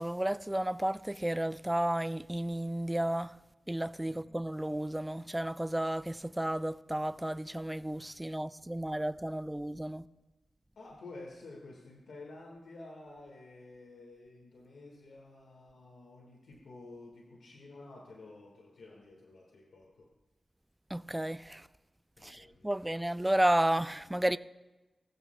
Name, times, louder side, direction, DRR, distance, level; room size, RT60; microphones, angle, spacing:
voice 1, 0.0-3.4 3.7-10.1 20.9-21.7 22.2-24.4, right 1 dB, 10° right, 0.4 m, -32 dB
voice 2, 4.1-4.4 10.7-20.1 22.2-22.9, left 2 dB, 85° left, 1.6 m, -51 dB
19.5 x 14.5 x 2.2 m
cardioid pair, 55°, 0 cm